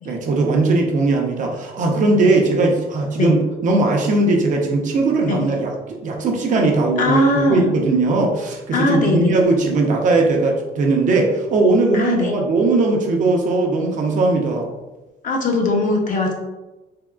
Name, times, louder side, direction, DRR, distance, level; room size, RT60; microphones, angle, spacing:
voice 1, 0.0-14.7, right 3 dB, 50° right, 0 dB, 0.6 m, -19 dB
voice 2, 7.0-7.7 8.7-9.3 11.9-12.3 15.2-16.3, left 2 dB, 50° left, 1 dB, 0.7 m, -20 dB
3.5 x 2.0 x 2.3 m, 1.1 s
cardioid pair, 110°, 17 cm